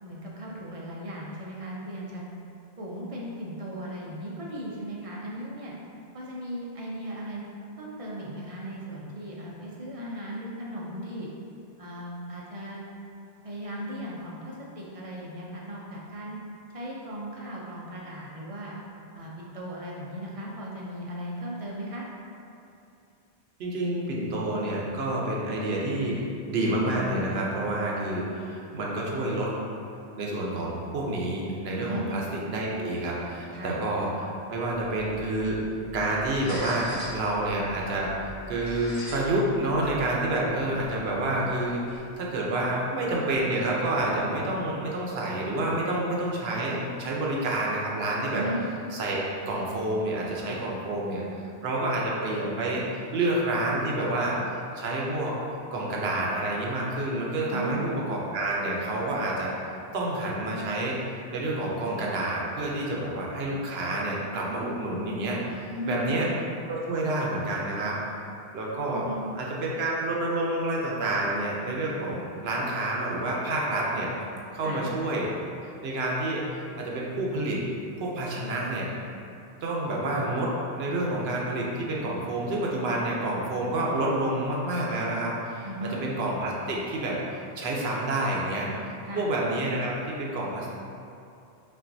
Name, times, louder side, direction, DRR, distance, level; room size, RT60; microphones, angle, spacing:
voice 1, 0.0-2.2 2.8-5.7 6.1-7.4 7.8-11.3 11.8-12.8 13.4-16.4 16.7-18.8 19.1-22.1 31.8-32.1 33.5-33.8 48.3-48.6 57.5-58.0 65.7-66.3 68.9-69.3 74.6-74.8 85.6-86.0 89.0-89.3, equal, 50° right, -4 dB, 0.4 m, -37 dB
voice 2, 23.6-26.2 26.5-29.5 30.2-32.2 32.5-35.6 35.9-38.1 38.5-48.4 49.0-51.2 51.6-52.8 53.1-54.4 54.7-55.3 55.7-65.4 65.8-66.3 66.7-68.0 68.5-69.0 69.4-74.1 74.5-75.3 75.8-76.4 76.7-77.6 78.0-78.9 79.6-90.7, right 1 dB, 70° right, -3 dB, 0.8 m, -28 dB
sound 1, 34.7-42.0, equal, 55° left, 1.5 m, -43 dB
5.4 x 2.5 x 2.6 m, 2.6 s
omnidirectional pair, 1.1 m